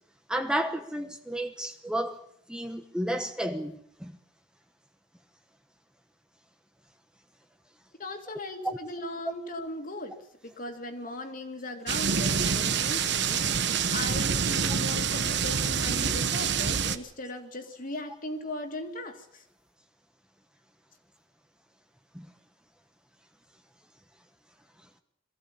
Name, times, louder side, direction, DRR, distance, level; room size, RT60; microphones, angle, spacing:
voice 1, 0.3-2.2 2.5-4.2 8.6-8.8 22.1-22.3, right 1 dB, 5° right, 1.1 m, -32 dB
voice 2, 8.0-10.2 10.4-19.4, left 1 dB, 45° left, 2.6 m, -38 dB
sound 1, 11.9-17.0, right 6 dB, 65° right, 1.2 m, -27 dB
22.5 x 15.0 x 8.6 m
head